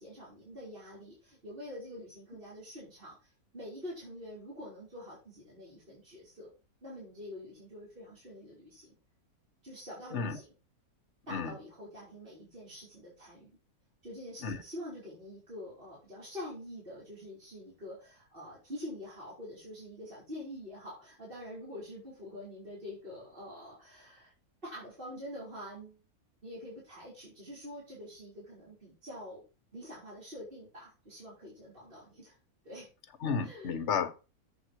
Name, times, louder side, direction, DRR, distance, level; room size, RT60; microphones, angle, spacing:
voice 1, 0.0-3.3 3.5-6.5 6.8-8.9 9.6-10.5 11.3-13.5 14.0-24.3 24.6-26.0 26.4-29.4 29.7-32.3 32.6-32.9 33.4-33.8, left 1 dB, 35° right, 5.1 m, -46 dB
voice 2, 33.2-34.1, left 6 dB, 50° left, 1.4 m, -32 dB
7.8 x 7.8 x 4.7 m
omnidirectional pair, 1.6 m